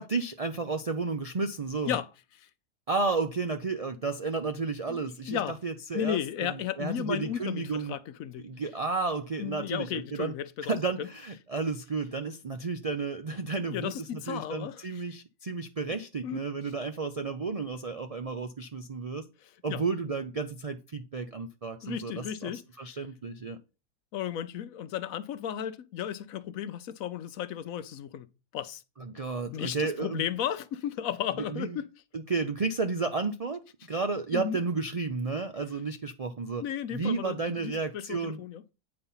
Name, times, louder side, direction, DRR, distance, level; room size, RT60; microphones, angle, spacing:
voice 1, 0.0-1.9 2.9-7.9 8.4-10.3 10.6-19.2 19.6-23.6 29.0-30.2 31.5-31.8 32.1-36.6 36.9-38.4, right 4 dB, 65° right, 0.3 m, -32 dB
voice 2, 4.9-5.6 5.9-8.4 9.4-11.1 13.7-15.0 16.2-16.4 19.7-19.8 21.8-22.6 24.1-28.3 28.5-28.8 29.5-31.9 34.3-34.6 36.6-38.7, left 10 dB, 70° left, 1.0 m, -34 dB
8.8 x 4.2 x 5.5 m
omnidirectional pair, 1.6 m